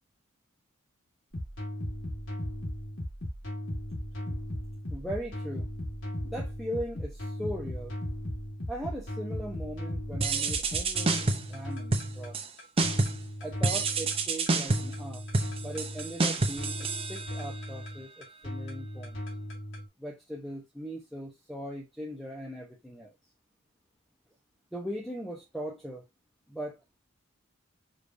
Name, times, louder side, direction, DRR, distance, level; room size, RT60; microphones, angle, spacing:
sound 1, 1.3-19.9, equal, 70° left, 2.1 m, -37 dB
voice 1, 4.9-5.7 6.2-7.9 8.7-12.4 13.4-15.3 15.6-19.2 20.0-23.1 24.7-26.0 26.5-26.8, equal, ahead, 0.8 m, -39 dB
sound 2, 10.2-11.6 11.9-12.5 12.8-13.3 13.6-17.6, right 3 dB, 30° right, 0.6 m, -29 dB
5.0 x 3.3 x 2.6 m
head